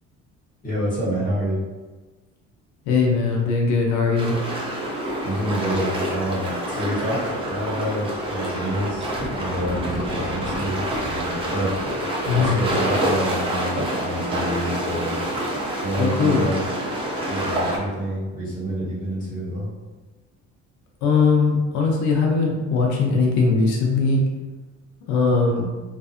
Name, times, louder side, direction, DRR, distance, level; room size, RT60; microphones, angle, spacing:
voice 1, 0.6-1.6 5.2-9.1 9.4-11.7 12.3-15.1 15.8-16.7 17.2-19.7, right 1 dB, 25° left, -8 dB, 1.1 m, -28 dB
voice 2, 2.8-4.4 12.3-12.6 16.0-16.5 21.0-24.2 25.1-25.7, left 4 dB, 75° left, -1 dB, 0.6 m, -20 dB
sound 1, 4.2-17.8, right 1 dB, 20° right, 0.3 m, -27 dB
2.5 x 2.4 x 2.4 m, 1.2 s
cardioid pair, 165°, 30 cm